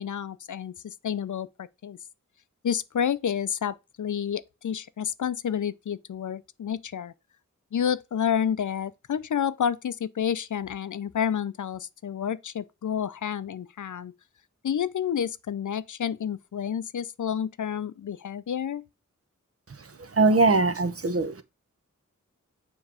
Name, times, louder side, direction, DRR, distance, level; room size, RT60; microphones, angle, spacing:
voice 1, 0.0-2.0 2.6-7.1 7.7-14.1 14.6-18.8, left 8 dB, 70° left, 0.5 m, -29 dB
voice 2, 19.8-21.4, right 3 dB, 50° right, 0.7 m, -22 dB
7.2 x 3.1 x 4.8 m
wide cardioid pair, 70°, 31 cm